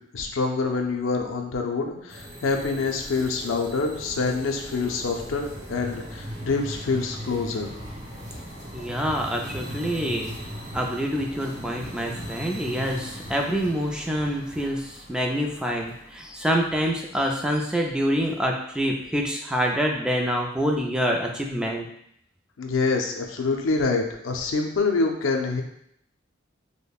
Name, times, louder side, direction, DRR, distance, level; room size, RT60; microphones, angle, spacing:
voice 1, 0.0-7.7 22.6-25.6, left 4 dB, 90° left, 3 dB, 0.5 m, -26 dB
sound 1, 2.1-17.4, equal, 35° right, 0.9 m, -39 dB
voice 2, 8.7-10.3 10.7-21.9, equal, 5° right, 0 dB, 0.3 m, -26 dB
5.1 x 2.1 x 2.3 m, 0.73 s
head